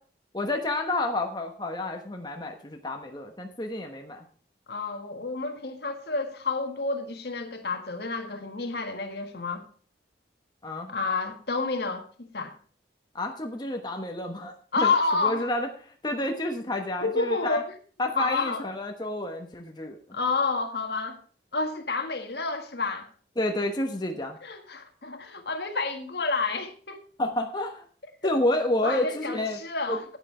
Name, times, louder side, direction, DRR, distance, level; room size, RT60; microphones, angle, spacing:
voice 1, 0.3-4.2 10.6-10.9 13.1-14.9 15.2-17.6 18.0-20.0 23.4-24.4 27.2-27.9 28.2-29.6 29.9-30.0, left 1 dB, 25° left, 1.1 m, -30 dB
voice 2, 4.7-9.6 10.9-12.5 14.7-15.5 17.0-17.6 18.1-18.6 20.1-21.2 21.5-23.1 24.4-27.0 28.2-28.3 28.8-30.0, left 3 dB, 60° left, 1.6 m, -29 dB
9.8 x 9.2 x 4.8 m
head